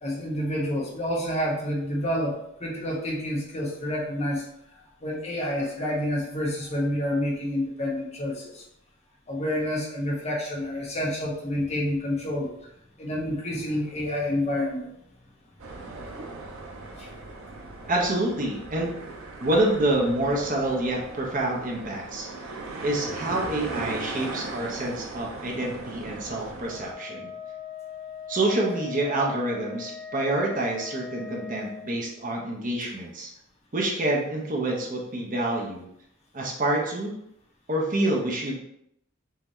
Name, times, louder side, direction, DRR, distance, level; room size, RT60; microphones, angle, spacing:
voice 1, 0.0-8.6 9.3-12.5 13.0-14.9 17.0-17.1, left 1 dB, 30° left, -3 dB, 1.1 m, -29 dB
sound 1, 15.6-26.9, right 3 dB, 80° right, 0.7 m, -38 dB
voice 2, 17.9-18.9 19.4-22.3 22.8-27.3 28.3-33.3 33.7-35.9 36.3-37.1 37.7-38.6, right 1 dB, 40° right, -1 dB, 0.9 m, -27 dB
Wind instrument woodwind instrument, 26.7-32.0, left 7 dB, 5° right, 0.9 m, -40 dB
5.7 x 2.8 x 3.1 m, 0.74 s
head